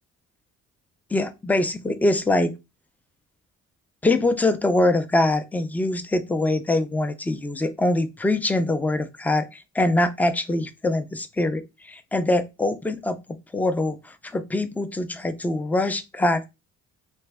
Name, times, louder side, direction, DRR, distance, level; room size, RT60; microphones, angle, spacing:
voice 1, 1.1-2.5 4.0-16.5, left 2 dB, 5° left, 0.3 m, -23 dB
3.3 x 2.1 x 3.3 m
cardioid pair, 90°, 30 cm